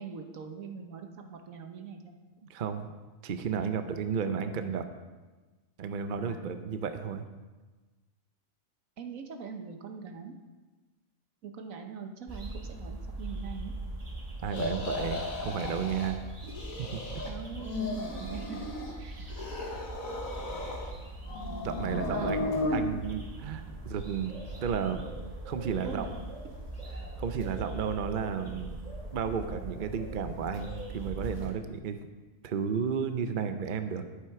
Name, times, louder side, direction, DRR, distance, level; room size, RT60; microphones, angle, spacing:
voice 1, 0.0-2.1 6.2-6.6 9.0-10.3 11.4-13.7 17.3-18.7 19.0-19.3 22.1-23.0 25.8-26.1, right 6 dB, 75° right, 5 dB, 1.4 m, -42 dB
voice 2, 2.5-2.9 3.2-4.8 5.8-7.2 14.4-16.2 16.8-17.0 21.6-25.1 25.5-26.1 27.0-28.8 29.1-32.0 32.4-34.1, right 7 dB, 50° right, 8 dB, 0.7 m, -33 dB
sound 1, 12.3-31.5, right 2 dB, 30° right, 1.3 m, -41 dB
sound 2, 14.5-16.1 16.4-17.3 17.6-19.0 19.3-20.9 21.3-22.8, left 2 dB, 75° left, 1.9 m, -35 dB
11.0 x 8.2 x 4.7 m, 1.2 s
omnidirectional pair, 1.4 m